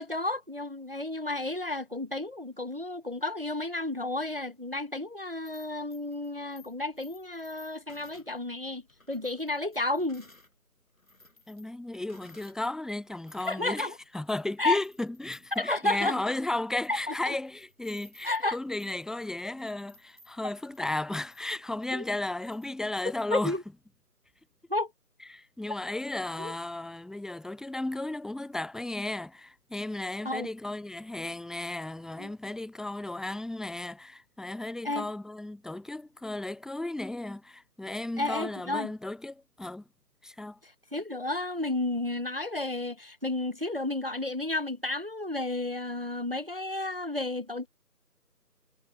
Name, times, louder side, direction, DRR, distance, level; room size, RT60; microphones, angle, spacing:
voice 1, 0.0-8.8 9.1-10.2 13.4-14.0 14.6-14.8 15.5-16.2 16.9-17.4 18.2-18.6 21.9-22.0 23.3-23.6 24.7-24.9 26.4-26.5 30.2-30.5 32.2-32.3 34.8-35.1 38.2-38.9 40.6-47.7, left 2 dB, 35° right, 0.9 m, -32 dB
sound 1, 5.3-10.5 10.9-12.7 13.0-23.3, left 2 dB, 55° left, 4.4 m, -59 dB
voice 2, 11.5-23.5 25.3-39.8 40.2-40.6, left 2 dB, ahead, 0.6 m, -34 dB
figure-of-eight pair, 175°, 48 cm